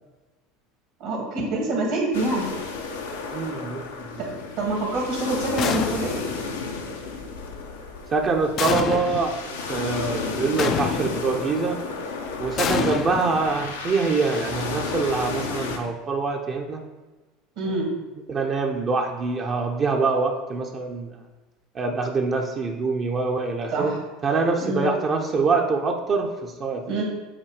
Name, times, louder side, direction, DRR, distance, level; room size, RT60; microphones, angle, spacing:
voice 1, 1.0-2.5 4.2-4.3 4.6-6.2 17.6-17.9 23.7-24.0 24.6-24.9 26.9-27.0, right 2 dB, 65° right, 0 dB, 1.8 m, -26 dB
sound 1, 2.1-15.8, left 4 dB, 85° left, 0.7 m, -33 dB
voice 2, 3.3-4.2 8.1-11.8 12.4-16.8 18.3-21.2 21.7-23.9 24.2-27.0, right 4 dB, 35° right, 2 dB, 0.7 m, -25 dB
sound 2, 5.6-6.3 8.6-9.4 10.6-11.4 12.6-13.8, left 7 dB, 50° left, 0.4 m, -27 dB
7.3 x 2.7 x 4.8 m, 1.2 s
hypercardioid pair, 80°, 0 cm